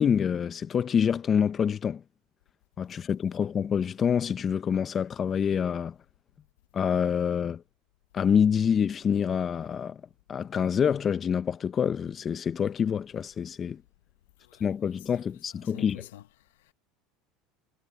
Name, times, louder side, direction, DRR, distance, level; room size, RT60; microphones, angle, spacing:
voice 1, 0.0-2.0 2.8-5.9 6.7-7.6 8.1-10.0 10.3-13.8 14.6-16.0, left 7 dB, 35° left, 0.9 m, -26 dB
voice 2, 14.4-15.1 15.6-16.7, left 14 dB, 80° left, 1.5 m, -48 dB
hypercardioid pair, 85°, 0 cm